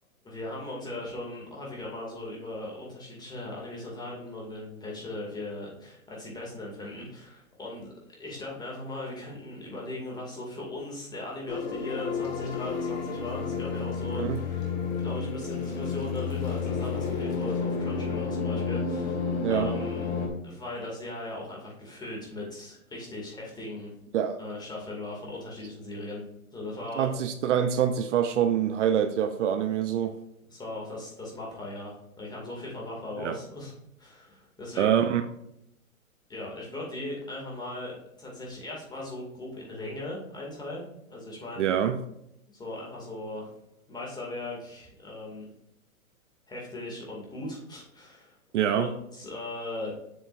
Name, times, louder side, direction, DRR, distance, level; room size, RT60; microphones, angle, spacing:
voice 1, 0.2-7.9 8.2-20.1 20.4-23.9 24.4-26.2 26.5-27.1 30.5-35.1 36.3-41.7 42.5-43.5 43.9-45.5 46.5-48.4 48.7-49.9, left 2 dB, 10° left, -3 dB, 2.3 m, -38 dB
sound 1, 11.5-20.3, left 5 dB, 50° left, 2.2 m, -31 dB
voice 2, 27.0-30.2 33.2-33.4 34.8-35.2 41.6-42.0 48.5-48.9, right 9 dB, 55° right, 8 dB, 0.7 m, -25 dB
7.7 x 6.7 x 2.6 m, 0.78 s
hypercardioid pair, 130°, 43 cm